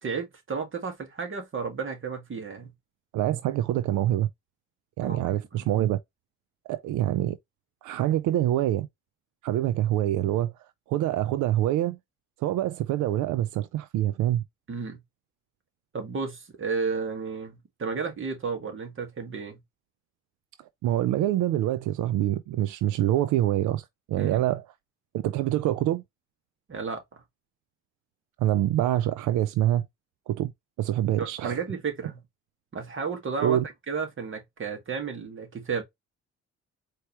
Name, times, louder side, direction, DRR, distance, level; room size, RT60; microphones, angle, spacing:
voice 1, 0.0-2.7 5.0-5.7 14.7-15.0 15.9-19.6 24.1-24.4 26.7-27.2 31.2-32.2 32.7-33.6 33.9-35.8, right 5 dB, 40° right, 1.8 m, -33 dB
voice 2, 3.1-4.3 5.0-6.0 6.7-7.4 7.8-8.9 9.4-10.5 10.9-12.0 12.4-14.4 20.8-24.6 25.1-26.0 28.4-29.9 30.3-30.5 30.8-31.6 33.4-33.6, right 13 dB, 80° right, 0.5 m, -25 dB
4.6 x 3.0 x 3.0 m
cardioid pair, 90°, 30 cm